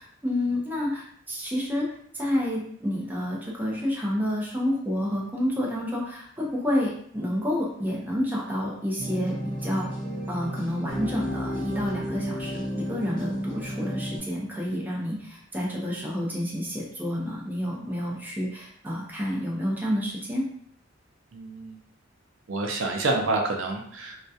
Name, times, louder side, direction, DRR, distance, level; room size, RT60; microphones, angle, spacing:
voice 1, 0.0-9.9 10.3-20.5, left 1 dB, 10° right, -4 dB, 0.5 m, -29 dB
sound 1, 9.0-14.2, equal, 25° left, 0.8 m, -32 dB
voice 2, 21.3-21.8 22.5-24.3, right 2 dB, 75° right, 2 dB, 0.4 m, -28 dB
2.3 x 2.2 x 2.7 m, 0.64 s
head